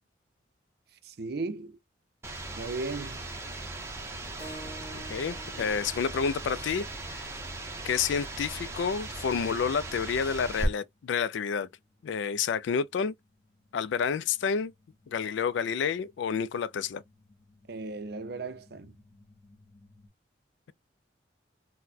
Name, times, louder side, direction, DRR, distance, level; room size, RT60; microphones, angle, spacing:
voice 1, 1.0-1.8 2.6-3.2 5.6-5.7 17.7-18.9, right 3 dB, 55° right, 0.5 m, -36 dB
sound 1, 2.2-10.7, right 2 dB, 15° right, 0.7 m, -38 dB
Keyboard (musical), 4.4-9.5, right 1 dB, 30° left, 0.7 m, -50 dB
voice 2, 4.9-7.3 7.8-11.7 12.0-13.1 13.7-14.7 15.1-17.0, left 6 dB, 75° left, 0.3 m, -29 dB
sound 2, 11.7-20.1, left 2 dB, 10° left, 1.0 m, -63 dB
3.9 x 2.1 x 2.6 m
head